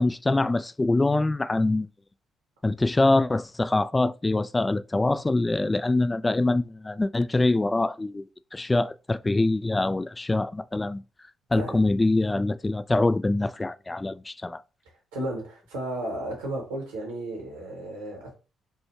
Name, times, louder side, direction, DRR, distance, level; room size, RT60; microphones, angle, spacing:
voice 1, 0.0-1.9 2.6-8.3 8.5-11.0 11.5-14.6, left 2 dB, 20° left, 0.3 m, -24 dB
voice 2, 15.1-18.3, right 1 dB, 75° right, 2.0 m, -33 dB
5.4 x 3.2 x 3.1 m
figure-of-eight pair, 40°, 0 cm